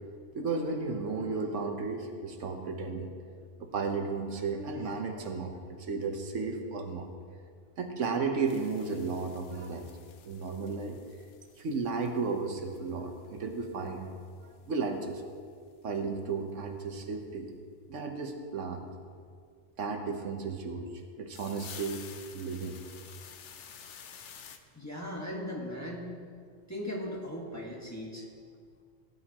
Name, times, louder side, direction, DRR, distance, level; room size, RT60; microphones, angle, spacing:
voice 1, 0.3-3.1 3.6-7.1 7.8-9.9 10.2-11.0 11.6-14.1 14.7-15.2 15.8-17.5 17.9-18.9 19.8-22.0 22.3-22.8, right 4 dB, 85° right, 4 dB, 1.3 m, -34 dB
sound 1, 8.5-13.6 13.9-14.0 14.3-14.4 14.6-14.7 15.1-15.2 17.1-17.2 21.3-24.6, left 7 dB, 75° left, 1.0 m, -51 dB
voice 2, 24.7-26.1 26.7-28.3, left 1 dB, 15° left, -3 dB, 1.7 m, -38 dB
17.5 x 9.7 x 3.0 m, 2.1 s
omnidirectional pair, 1.2 m